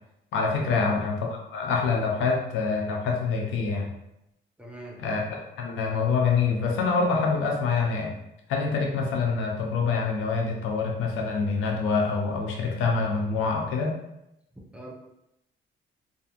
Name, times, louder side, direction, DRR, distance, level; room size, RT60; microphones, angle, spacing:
voice 1, 0.3-3.9 5.0-5.3 5.6-8.1 8.5-13.9, left 4 dB, 85° left, 0 dB, 0.6 m, -26 dB
voice 2, 4.6-5.0 14.7-14.9, equal, 5° right, -4 dB, 0.7 m, -41 dB
2.7 x 2.5 x 2.4 m, 0.85 s
cardioid pair, 90°, 20 cm